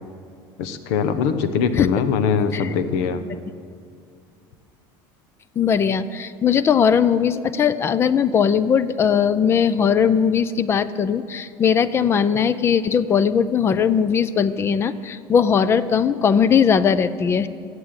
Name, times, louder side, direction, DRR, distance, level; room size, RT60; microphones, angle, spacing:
voice 1, 0.6-3.2, left 6 dB, 75° left, 11 dB, 1.0 m, -22 dB
voice 2, 5.6-17.5, left 7 dB, 25° left, 15 dB, 0.4 m, -19 dB
15.0 x 8.2 x 8.9 m, 2.3 s
cardioid pair, 155°, 10 cm